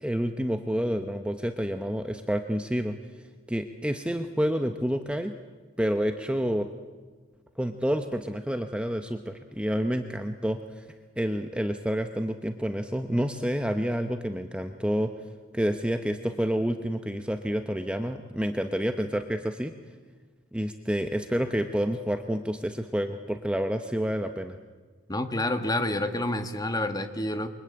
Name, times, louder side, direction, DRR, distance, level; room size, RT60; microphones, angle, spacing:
voice 1, 0.0-3.0 3.5-5.3 5.8-6.7 7.6-10.9 11.2-15.1 15.5-19.7 20.5-24.6, equal, 5° right, 6 dB, 0.9 m, -29 dB
voice 2, 25.1-27.5, left 1 dB, 20° left, 8 dB, 1.6 m, -28 dB
28.0 x 23.5 x 8.8 m, 1.4 s
head